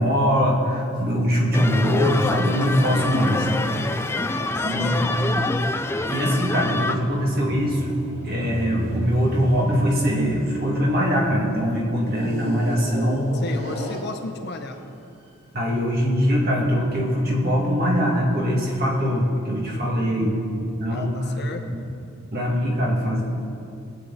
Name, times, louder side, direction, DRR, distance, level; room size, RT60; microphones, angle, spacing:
voice 1, 0.0-3.6 4.6-5.2 6.1-7.9 8.2-13.3 15.5-21.2 22.3-23.2, equal, 45° right, -2 dB, 2.3 m, -22 dB
sound 1, 1.5-6.9, left 2 dB, 10° left, 0.4 m, -26 dB
voice 2, 4.3-5.2 13.3-14.8 19.7-20.3 20.9-21.6, left 2 dB, 50° left, 5 dB, 1.0 m, -35 dB
sound 2, 6.6-11.3 12.1-14.6 15.3-15.4, equal, 75° right, 3.4 m, -34 dB
20.5 x 8.6 x 4.2 m, 2.6 s
head